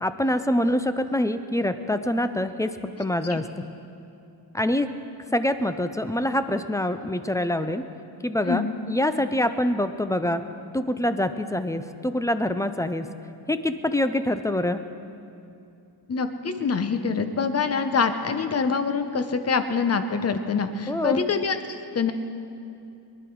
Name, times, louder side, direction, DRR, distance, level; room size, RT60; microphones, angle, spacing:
voice 1, 0.0-3.5 4.5-4.9 5.3-7.8 8.2-10.4 10.7-13.1 13.5-14.8 20.9-21.2, left 1 dB, 10° left, 10 dB, 0.4 m, -25 dB
voice 2, 16.1-22.1, left 5 dB, 35° left, 9 dB, 0.8 m, -25 dB
23.0 x 11.5 x 4.6 m, 2.6 s
wide cardioid pair, 175°, 43 cm